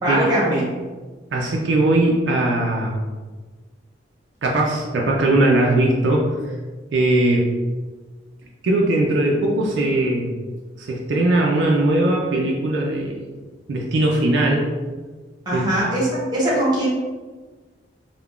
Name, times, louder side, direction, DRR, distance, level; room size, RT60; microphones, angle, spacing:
voice 1, 0.0-0.6 15.5-16.9, right 1 dB, 20° right, -6 dB, 0.9 m, -21 dB
voice 2, 1.3-3.0 4.4-6.3 6.9-7.5 8.6-10.3 10.8-13.2 13.7-14.7 15.5-15.6, right 1 dB, 75° right, -1 dB, 0.4 m, -19 dB
3.5 x 2.2 x 2.3 m, 1.3 s
head